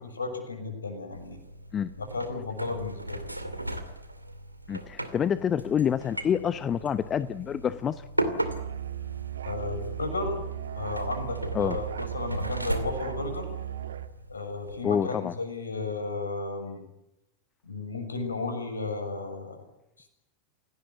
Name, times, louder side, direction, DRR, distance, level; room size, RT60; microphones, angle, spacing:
voice 1, 0.0-1.4 2.0-3.2 9.4-10.4 10.7-13.5 14.3-16.8 17.6-19.6, left 3 dB, 75° left, 7 dB, 6.7 m, -34 dB
sound 1, 1.1-14.7, right 1 dB, 85° right, 2.5 m, -37 dB
voice 2, 4.7-8.0 11.5-11.8 14.8-15.3, left 8 dB, 25° left, 15 dB, 0.8 m, -27 dB
Musical instrument, 8.4-14.1, right 11 dB, 65° right, 1.4 m, -36 dB
28.0 x 18.0 x 8.3 m, 0.87 s
figure-of-eight pair, 90°, 0 cm